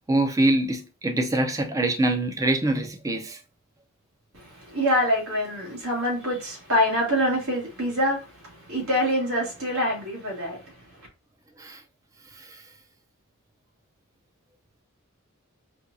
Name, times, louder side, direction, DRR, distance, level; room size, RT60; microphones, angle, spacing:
voice 1, 0.1-3.4 11.6-11.8 12.4-12.6, right 1 dB, 15° right, 0.4 m, -24 dB
voice 2, 4.3-10.9, equal, 75° right, 1.6 m, -25 dB
4.3 x 2.3 x 2.5 m
head